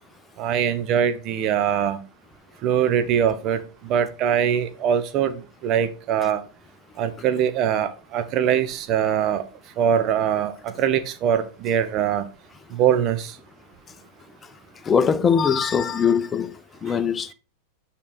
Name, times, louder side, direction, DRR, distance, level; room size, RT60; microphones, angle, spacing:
voice 1, 0.4-2.0 2.6-6.4 7.0-9.4 9.8-12.3 12.7-13.4, right 9 dB, 35° right, 0.7 m, -22 dB
voice 2, 14.8-17.3, left 6 dB, 20° left, 0.6 m, -21 dB
8.4 x 3.7 x 4.1 m
figure-of-eight pair, 90°, 0 cm